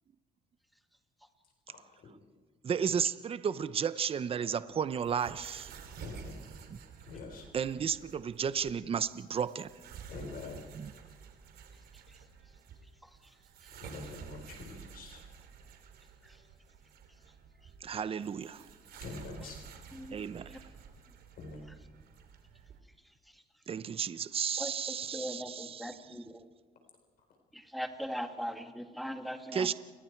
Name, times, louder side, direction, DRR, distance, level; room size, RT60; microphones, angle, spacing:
voice 1, 2.6-5.7 6.7-6.8 7.5-9.7 10.7-10.9 17.8-18.6 20.1-20.6 23.7-26.3 29.5-29.7, right 7 dB, 35° right, 14 dB, 0.8 m, -33 dB
sound 1, 4.7-22.8, right 6 dB, 65° right, 3.2 m, -51 dB
voice 2, 6.0-6.4 7.1-7.4 10.1-10.6 13.8-15.2 19.0-19.6 21.4-21.6, left 4 dB, 60° left, 3 dB, 4.3 m, -44 dB
voice 3, 25.1-26.4 27.5-29.7, equal, ahead, 5 dB, 2.1 m, -39 dB
29.5 x 21.5 x 4.6 m, 1.4 s
cardioid pair, 110°, 17 cm